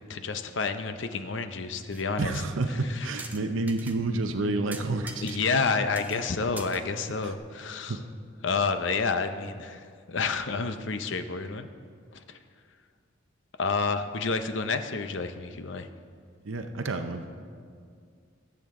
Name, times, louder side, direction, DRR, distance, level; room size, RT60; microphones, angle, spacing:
voice 1, 0.1-2.3 2.9-3.1 5.2-8.0 8.4-11.7 13.6-15.9, left 4 dB, 65° left, 9 dB, 0.7 m, -29 dB
sound 1, 1.7-2.1 2.3-2.4 3.2-4.0 4.3-4.4 4.7-5.7 6.0-6.2 6.6-7.4, right 2 dB, 10° right, 0.6 m, -44 dB
voice 2, 2.2-5.4 7.2-7.3 7.9-8.0 16.4-17.2, right 2 dB, 80° right, 7 dB, 0.7 m, -29 dB
20.5 x 8.0 x 3.7 m, 2.1 s
head